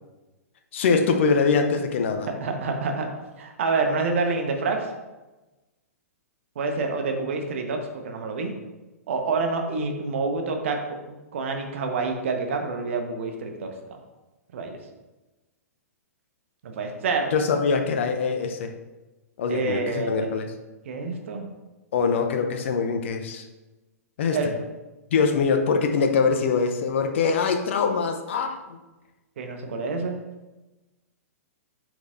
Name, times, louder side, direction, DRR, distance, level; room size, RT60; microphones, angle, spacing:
voice 1, 0.7-2.3 17.3-18.7 19.4-20.5 21.9-23.4 24.2-24.4 25.1-28.8, left 5 dB, 50° left, 5 dB, 0.7 m, -23 dB
voice 2, 2.3-3.1 3.4-4.9 6.5-8.5 9.1-11.0 11.3-13.7 14.5-14.8 16.6-17.3 19.5-20.3 20.8-21.5 24.3-24.5 29.4-30.2, right 4 dB, 50° right, 4 dB, 1.2 m, -27 dB
9.6 x 6.1 x 2.6 m, 1.1 s
figure-of-eight pair, 110°, 8 cm